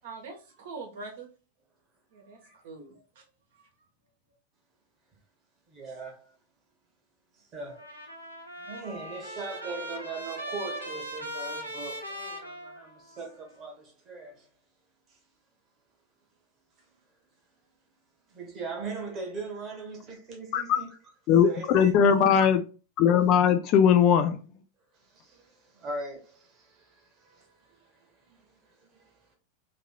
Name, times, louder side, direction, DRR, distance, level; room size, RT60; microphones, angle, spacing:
voice 1, 0.0-1.3 2.1-3.2 3.5-3.7, right 4 dB, 55° right, 0.9 m, -43 dB
voice 2, 5.7-6.3 7.3-7.9 8.6-14.5 15.1-15.2 18.3-21.0 21.4-21.9 24.9-29.4, right 3 dB, 30° right, 1.2 m, -41 dB
Trumpet, 7.7-13.3, right 1 dB, 90° left, 0.7 m, -39 dB
voice 3, 21.3-22.6 23.0-24.4, left 8 dB, 40° left, 0.4 m, -20 dB
3.1 x 2.7 x 2.2 m
figure-of-eight pair, 90°, 0 cm